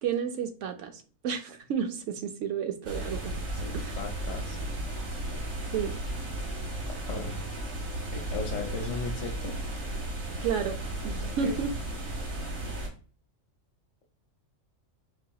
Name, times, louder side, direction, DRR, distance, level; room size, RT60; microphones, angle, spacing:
voice 1, 0.0-3.3 3.7-4.0 5.7-5.9 10.4-10.8 11.0-11.7, right 7 dB, 75° right, 1.0 m, -31 dB
sound 1, 2.8-12.9, right 1 dB, 90° right, 1.7 m, -34 dB
voice 2, 3.5-4.6 6.9-7.5 8.1-9.6 11.2-11.6, left 4 dB, 70° left, 1.0 m, -37 dB
4.8 x 2.8 x 2.3 m
omnidirectional pair, 1.4 m